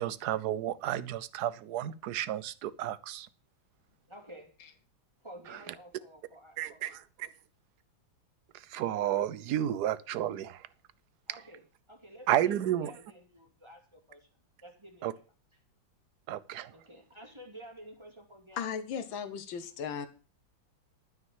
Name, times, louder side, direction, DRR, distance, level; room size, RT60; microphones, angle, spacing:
voice 1, 0.0-3.3 6.6-6.9 7.2-7.3 8.7-10.6 12.3-12.9 15.0-15.1 16.3-16.7, right 12 dB, 65° right, 16 dB, 1.2 m, -31 dB
voice 2, 4.1-4.6 5.2-7.0 11.3-14.3 14.6-15.2 16.7-18.7, right 1 dB, 15° right, 2 dB, 2.5 m, -51 dB
voice 3, 18.6-20.1, left 7 dB, 85° left, 10 dB, 1.8 m, -36 dB
12.5 x 6.4 x 7.2 m, 0.37 s
omnidirectional pair, 2.1 m